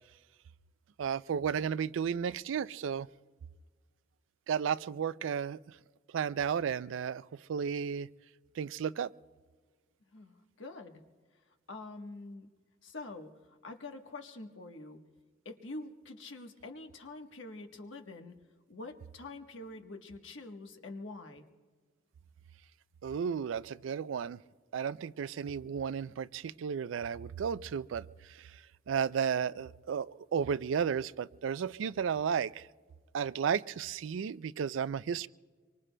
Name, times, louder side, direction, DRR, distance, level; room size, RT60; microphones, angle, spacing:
voice 1, 1.0-3.1 4.5-5.6 6.1-8.1 8.6-9.1 23.0-24.4 24.7-28.5 28.9-32.7 33.1-35.3, right 7 dB, 75° right, 17 dB, 0.3 m, -33 dB
voice 2, 10.1-11.0 11.7-12.5 12.8-15.0 15.4-18.3 18.7-21.4, left 2 dB, 75° left, 5 dB, 1.2 m, -46 dB
25.5 x 24.0 x 2.2 m, 1.5 s
head